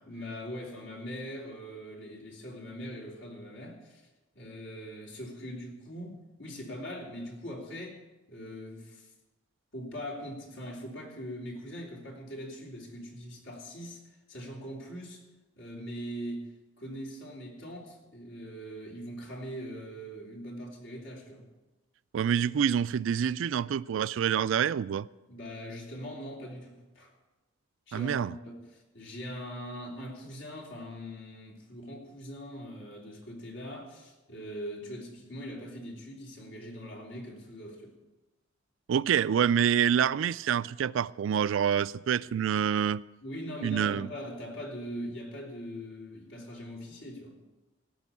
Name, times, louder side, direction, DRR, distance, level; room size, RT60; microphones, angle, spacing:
voice 1, 0.1-4.0 4.3-8.0 8.3-9.1 9.7-14.0 14.3-15.2 15.6-16.5 16.8-21.5 25.3-27.1 27.9-37.9 43.2-47.4, equal, 75° left, 3.3 m, -41 dB
voice 2, 22.1-25.1 27.9-28.3 38.9-43.0 43.6-44.1, right 8 dB, 75° right, 0.3 m, -27 dB
16.5 x 6.2 x 8.4 m
head